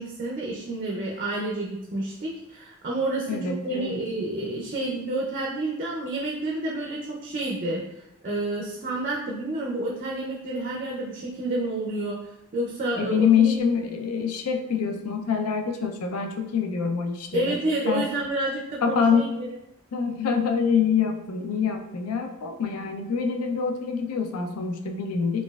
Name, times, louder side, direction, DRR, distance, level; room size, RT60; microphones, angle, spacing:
voice 1, 0.0-7.8 8.2-12.2 12.5-13.6 17.3-19.5, right 2 dB, 40° right, -3 dB, 0.4 m, -29 dB
voice 2, 3.3-4.0 13.0-17.6 17.9-18.1 18.8-19.4 19.9-25.4, left 6 dB, 85° left, 4 dB, 0.4 m, -25 dB
4.0 x 2.3 x 2.3 m, 0.86 s
head